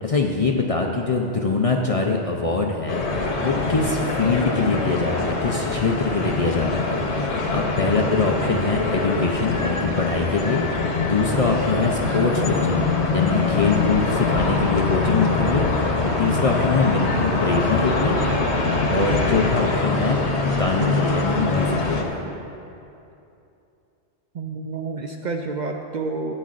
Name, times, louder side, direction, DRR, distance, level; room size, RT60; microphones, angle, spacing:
voice 1, 0.0-3.1 3.4-6.9 7.2-10.6 11.0-12.8 13.1-18.2 18.9-20.2 20.5-22.1, left 4 dB, 45° left, 1 dB, 0.5 m, -23 dB
sound 1, 2.9-22.0, left 3 dB, 80° left, 1.3 m, -23 dB
voice 2, 24.3-26.3, right 3 dB, 55° right, 3 dB, 0.5 m, -29 dB
14.0 x 9.1 x 2.5 m, 2.7 s
omnidirectional pair, 1.1 m